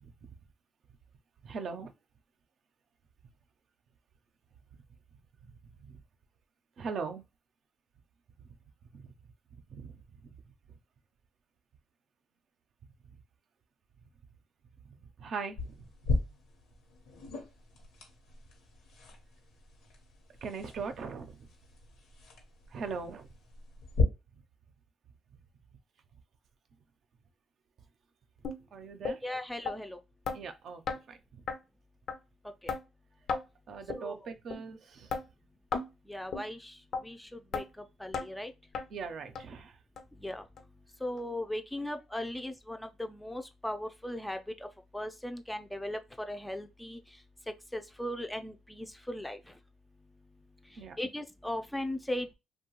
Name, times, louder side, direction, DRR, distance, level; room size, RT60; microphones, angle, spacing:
voice 1, 1.4-1.9 5.4-5.5 5.9-6.0 6.8-7.2 8.9-9.1 9.7-10.3 15.2-15.8 20.4-21.5 22.7-23.3 28.7-29.2 30.3-30.8 31.1-31.2 33.7-35.1 38.9-39.8 50.8-51.0, right 5 dB, 65° right, 0.5 m, -40 dB
sound 1, 15.6-24.0, left 3 dB, 90° left, 0.9 m, -38 dB
sound 2, 28.4-28.6 29.0-29.2 29.7-29.8 30.3-30.4 30.9-31.0 31.5-31.6 32.1-32.2 32.7-32.8 33.3-33.4 33.9-34.0 34.5-34.6 35.1-35.2 35.7-35.9 36.3-36.5 36.9-37.0 37.5-37.7 38.1-38.3 38.7-38.9 39.3-39.4 40.0-40.1 40.6-40.7 41.2-41.3, left 5 dB, 65° left, 0.5 m, -34 dB
voice 2, 29.2-30.0 32.4-32.8 33.9-34.3 36.0-38.5 40.1-40.7 41.0-49.6 50.6-52.3, left 1 dB, 5° left, 0.4 m, -38 dB
2.7 x 2.2 x 2.9 m
cardioid pair, 90°, 0 cm